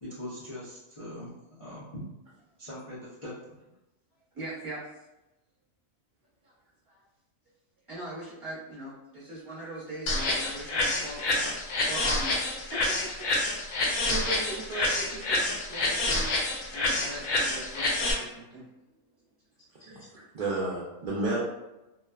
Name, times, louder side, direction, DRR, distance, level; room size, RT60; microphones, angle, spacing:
voice 1, 0.0-1.3 1.6-2.1 2.6-3.5, left 1 dB, 50° left, -10 dB, 0.4 m, -41 dB
voice 2, 4.3-4.8 6.4-6.5 6.9-7.0 7.9-18.7, right 2 dB, 30° right, -8 dB, 0.8 m, -40 dB
sound 1, 10.1-18.1, left 2 dB, 80° left, 1.0 m, -28 dB
voice 3, 19.8-21.4, right 2 dB, 65° right, -6 dB, 0.4 m, -31 dB
3.0 x 2.0 x 2.3 m, 0.98 s
omnidirectional pair, 1.4 m